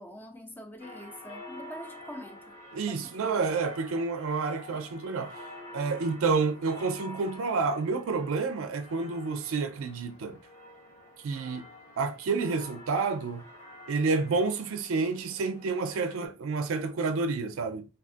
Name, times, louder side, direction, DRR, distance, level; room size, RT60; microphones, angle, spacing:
voice 1, 0.0-2.5 2.9-3.4, equal, 10° left, 0.4 m, -45 dB
sound 1, 0.8-16.3, left 1 dB, 80° left, 1.4 m, -48 dB
voice 2, 2.7-5.4 5.7-10.4 11.2-11.7 12.0-13.5 13.9-17.8, right 4 dB, 70° right, 0.4 m, -29 dB
3.4 x 2.3 x 2.5 m
head